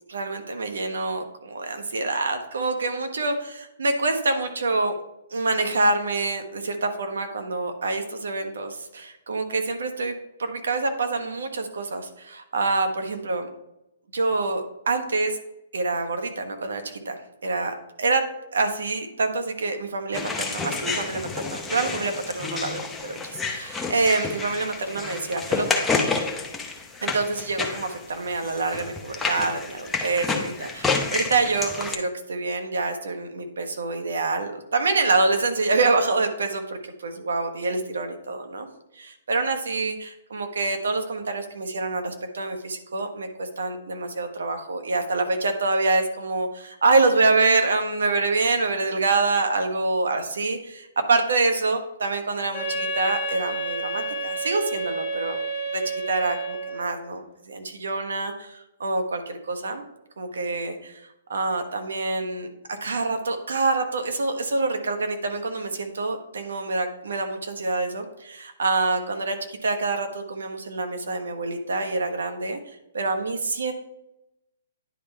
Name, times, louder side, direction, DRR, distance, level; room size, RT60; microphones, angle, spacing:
voice 1, 0.1-4.9 5.3-10.1 10.4-13.5 14.1-15.4 15.7-18.2 18.5-25.8 27.0-38.7 38.9-55.4 55.7-59.8 60.2-73.7, right 3 dB, 80° right, 6 dB, 1.2 m, -26 dB
sound 1, 20.1-31.9, left 4 dB, 10° left, 0.7 m, -29 dB
Wind instrument woodwind instrument, 52.5-57.0, right 2 dB, 30° left, 1.3 m, -30 dB
10.0 x 3.4 x 4.5 m, 0.87 s
hypercardioid pair, 150°, 0 cm